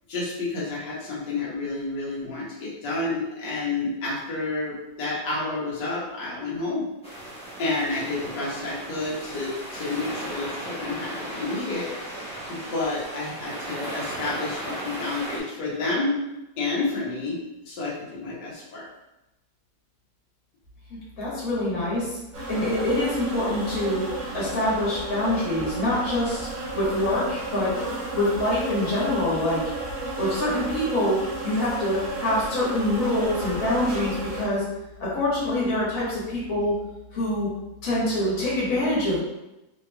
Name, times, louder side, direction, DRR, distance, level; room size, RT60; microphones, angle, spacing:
voice 1, 0.1-6.9 7.6-11.9 12.5-16.2 16.6-17.4 17.7-18.8, left 3 dB, 90° left, -7 dB, 1.5 m, -30 dB
sound 1, 7.0-15.4, right 1 dB, 10° left, 0.4 m, -36 dB
voice 2, 21.2-22.2 22.5-26.5 26.7-27.7 28.1-29.6 30.2-34.6 35.0-36.7 37.1-37.5 37.8-39.2, left 1 dB, 55° left, -7 dB, 1.6 m, -25 dB
sound 2, 22.3-34.4, right 2 dB, 60° right, 1.3 m, -33 dB
3.4 x 3.0 x 2.2 m, 0.95 s
omnidirectional pair, 1.8 m